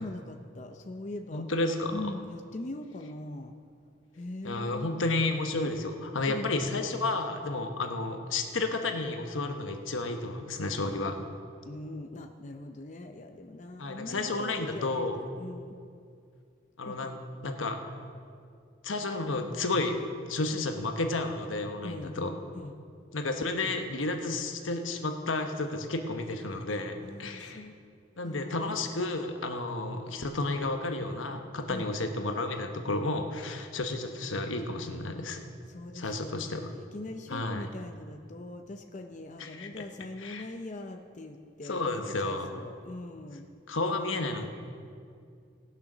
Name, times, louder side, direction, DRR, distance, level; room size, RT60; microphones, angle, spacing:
voice 1, 0.0-1.4 1.9-3.5 4.1-5.1 6.3-6.5 11.6-15.8 16.9-17.0 21.8-22.2 22.5-22.8 27.0-27.7 28.2-28.7 31.7-31.9 35.7-41.9 42.2-43.5, left 2 dB, 40° left, 5 dB, 0.6 m, -41 dB
voice 2, 1.3-1.9 4.4-11.2 13.8-15.2 16.8-17.2 17.4-17.8 18.8-19.9 20.3-22.3 23.1-27.7 28.2-35.4 35.9-36.7 37.3-37.7 39.4-39.7 40.2-40.5 41.6-42.5 43.7-44.5, left 2 dB, 85° left, 5 dB, 1.1 m, -31 dB
18.5 x 6.8 x 6.2 m, 2.3 s
head